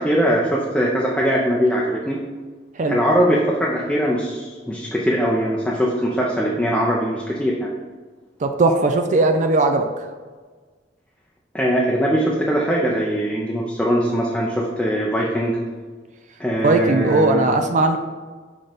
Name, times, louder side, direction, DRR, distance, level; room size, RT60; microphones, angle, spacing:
voice 1, 0.0-2.2 2.9-7.5 11.5-15.6 16.4-17.6, equal, 5° left, -4 dB, 0.6 m, -21 dB
voice 2, 8.4-10.0 16.6-18.0, right 2 dB, 45° right, 6 dB, 0.4 m, -18 dB
6.0 x 3.8 x 5.1 m, 1.4 s
head